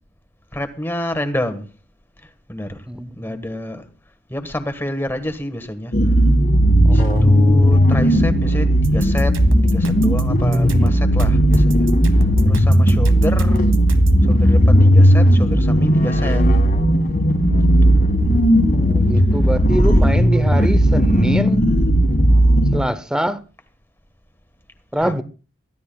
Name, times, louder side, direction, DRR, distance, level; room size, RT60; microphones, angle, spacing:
voice 1, 0.5-1.7 2.2-2.8 3.2-3.9 4.3-5.9 6.9-11.9 12.4-13.7 14.3-16.5 17.8-18.2 19.9-20.1 25.0-25.2, left 1 dB, 10° left, 1.4 m, -28 dB
voice 2, 2.9-3.4 6.8-7.2 18.7-21.6 22.7-23.4 24.9-25.2, equal, 5° right, 0.6 m, -24 dB
sound 1, 5.9-22.8, equal, 45° left, 1.7 m, -15 dB
sound 2, 8.8-14.2, right 2 dB, 70° right, 1.5 m, -31 dB
24.0 x 15.0 x 2.3 m
head